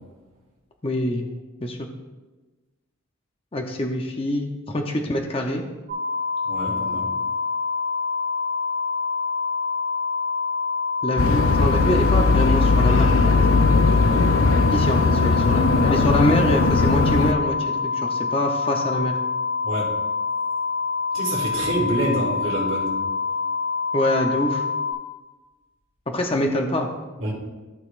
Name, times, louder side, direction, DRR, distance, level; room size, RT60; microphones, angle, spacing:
voice 1, 0.8-1.3 1.6-1.9 3.5-5.6 11.0-13.2 14.7-17.6 18.0-19.2 23.9-24.6 26.1-26.9, left 1 dB, 25° left, 2 dB, 0.7 m, -25 dB
sound 1, 5.9-24.9, left 4 dB, 45° right, 2.8 m, -26 dB
voice 2, 6.5-7.1 19.6-19.9 21.1-23.0 27.2-27.3, right 1 dB, 65° right, -9 dB, 2.8 m, -26 dB
sound 2, 11.2-17.3, left 3 dB, 75° left, 0.5 m, -19 dB
14.5 x 6.4 x 2.5 m, 1.2 s
head